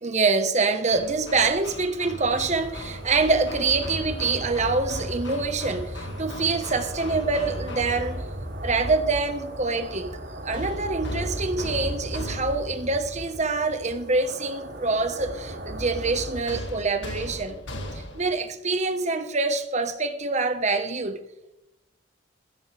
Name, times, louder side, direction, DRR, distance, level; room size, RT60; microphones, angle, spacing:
voice 1, 0.0-8.2 8.6-10.1 10.4-17.6 17.9-21.2, right 3 dB, 40° right, 1.4 m, -25 dB
Hammer, 0.9-8.3 10.5-12.9 16.5-18.4, left 1 dB, 65° left, 2.2 m, -38 dB
sound 1, 2.2-16.4, right 1 dB, 75° right, 4.6 m, -36 dB
15.5 x 13.0 x 3.5 m
head